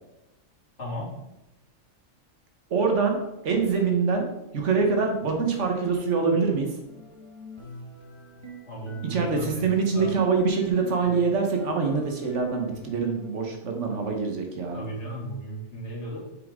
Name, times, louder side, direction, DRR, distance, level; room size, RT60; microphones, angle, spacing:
voice 1, 0.8-1.1 8.7-9.7 9.9-10.1 14.7-16.2, right 1 dB, 60° left, -6 dB, 2.8 m, -35 dB
voice 2, 2.7-4.3 4.5-6.8 9.0-14.8, right 4 dB, 65° right, 3 dB, 1.4 m, -25 dB
sound 1, 6.9-13.3, right 1 dB, 20° right, 1.2 m, -44 dB
6.6 x 5.3 x 3.6 m, 0.93 s
omnidirectional pair, 1.4 m